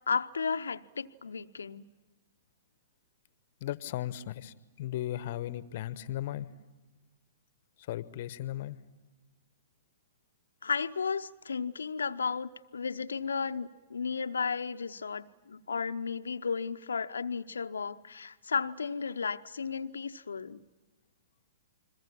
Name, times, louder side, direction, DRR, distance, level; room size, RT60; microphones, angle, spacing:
voice 1, 0.1-1.8 10.6-20.6, left 5 dB, 70° left, 12 dB, 0.8 m, -34 dB
voice 2, 3.6-6.5 7.9-8.8, left 13 dB, 50° left, 15 dB, 1.0 m, -36 dB
30.0 x 22.0 x 7.5 m, 1.2 s
figure-of-eight pair, 110°, 0 cm